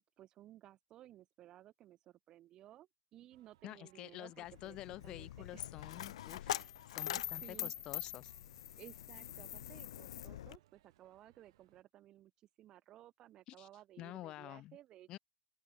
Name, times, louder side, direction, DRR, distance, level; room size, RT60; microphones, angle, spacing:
voice 1, 0.0-5.7 6.4-7.8 8.8-15.2, right 13 dB, 25° right, 6.9 m, -58 dB
sound 1, 3.3-11.8, right 15 dB, 65° right, 7.2 m, -72 dB
voice 2, 3.6-6.6 7.0-8.3 13.5-13.7 14.0-14.8 15.1-15.2, left 15 dB, 25° left, 2.1 m, -48 dB
Coin (dropping), 4.4-10.6, left 12 dB, 85° left, 0.7 m, -44 dB
open air
supercardioid pair, 175°, 3 cm